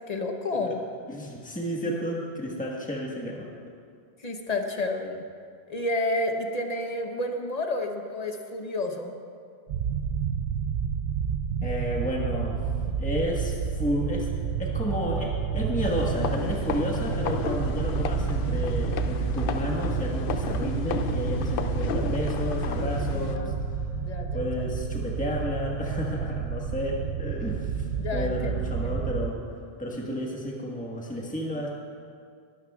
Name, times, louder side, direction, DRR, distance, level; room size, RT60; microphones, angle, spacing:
voice 1, 0.1-0.8 4.2-5.2 5.7-9.2 23.1-23.5 24.0-24.7 28.0-29.1, left 2 dB, 40° left, 4 dB, 1.0 m, -31 dB
voice 2, 1.1-3.5 11.6-12.6 13.0-23.8 24.3-29.4 29.8-31.7, equal, 10° left, -3 dB, 1.4 m, -32 dB
sound 1, 9.7-29.3, right 6 dB, 80° right, 0.8 m, -30 dB
sound 2, 15.8-23.4, left 7 dB, 65° left, 0.7 m, -33 dB
20.5 x 12.0 x 2.4 m, 2.2 s
omnidirectional pair, 1.0 m